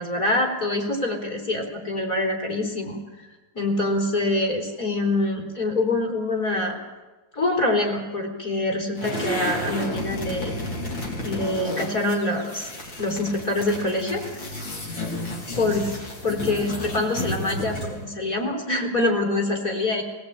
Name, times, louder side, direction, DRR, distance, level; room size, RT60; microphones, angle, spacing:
voice 1, 0.0-3.0 3.5-6.8 7.3-10.5 11.2-12.7 13.0-14.4 15.6-15.8 16.2-20.0, left 2 dB, 45° left, 0 dB, 4.4 m, -25 dB
sound 1, 9.0-18.0, left 1 dB, 80° left, 4.6 m, -32 dB
19.5 x 19.0 x 8.8 m, 1.2 s
omnidirectional pair, 2.1 m